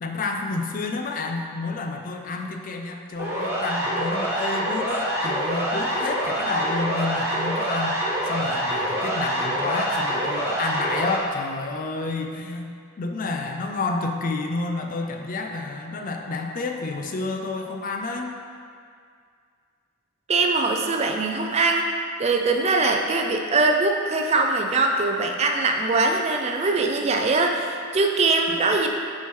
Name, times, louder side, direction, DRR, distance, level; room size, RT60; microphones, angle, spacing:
voice 1, 0.0-8.0 8.2-12.7 13.0-18.3, left 3 dB, 40° left, 4 dB, 0.4 m, -29 dB
Siren, 3.2-11.2, right 1 dB, 10° right, 0.9 m, -26 dB
voice 2, 20.3-21.9 22.2-28.9, right 3 dB, 30° right, 3 dB, 0.4 m, -22 dB
6.8 x 4.4 x 3.1 m, 2.2 s
head